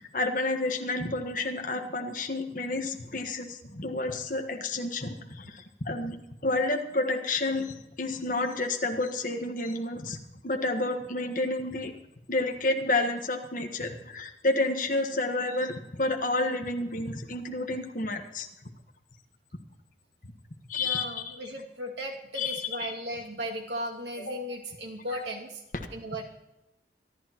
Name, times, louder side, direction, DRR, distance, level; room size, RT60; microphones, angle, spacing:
voice 1, 0.1-6.1 6.4-10.2 10.4-11.9 12.3-18.5 20.7-21.0 22.3-22.9, left 2 dB, 45° left, 3 dB, 1.4 m, -30 dB
voice 2, 20.8-25.6 25.9-26.2, equal, 90° right, 0 dB, 2.3 m, -36 dB
25.0 x 11.5 x 3.0 m, 0.92 s
head